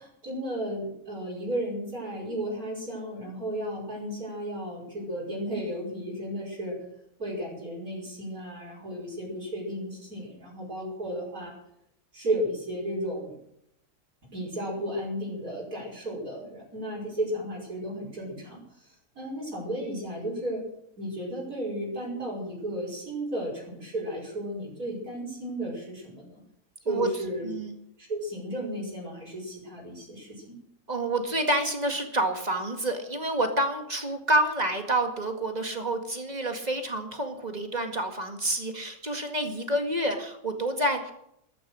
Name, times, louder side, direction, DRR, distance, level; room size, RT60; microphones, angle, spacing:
voice 1, 0.0-6.8 7.2-11.5 12.1-13.4 14.3-18.6 19.2-20.6 21.0-26.4 26.9-27.5 28.0-30.6, right 1 dB, 65° right, -6 dB, 6.2 m, -34 dB
voice 2, 27.4-27.8 30.9-41.1, right 1 dB, 25° right, 5 dB, 2.1 m, -28 dB
13.5 x 13.5 x 6.3 m, 0.75 s
omnidirectional pair, 1.6 m